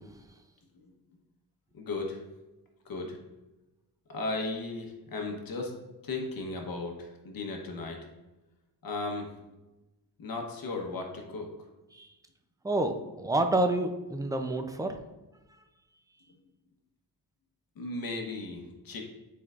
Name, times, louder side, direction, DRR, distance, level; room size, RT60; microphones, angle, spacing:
voice 1, 1.7-2.2 2.8-3.2 4.1-5.8 6.0-8.1 8.8-9.3 10.2-11.5 17.8-19.0, left 3 dB, 55° left, 2 dB, 1.0 m, -36 dB
voice 2, 12.6-15.0, right 2 dB, 10° right, 5 dB, 0.4 m, -28 dB
8.8 x 4.6 x 2.4 m, 1.0 s
wide cardioid pair, 130°, 41 cm